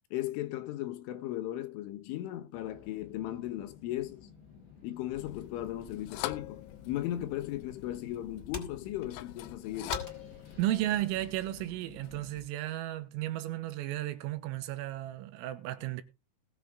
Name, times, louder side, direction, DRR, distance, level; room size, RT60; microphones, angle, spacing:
voice 1, 0.1-4.3 4.8-10.0, left 14 dB, 75° left, 3.5 m, -37 dB
sound 1, 2.5-12.4, left 6 dB, 60° left, 7.5 m, -54 dB
sound 2, 5.1-12.5, left 15 dB, 90° left, 3.7 m, -45 dB
sound 3, 9.7-12.4, left 2 dB, 20° left, 2.5 m, -48 dB
voice 2, 10.6-16.0, right 14 dB, 80° right, 3.8 m, -34 dB
20.0 x 7.5 x 3.7 m
omnidirectional pair, 6.0 m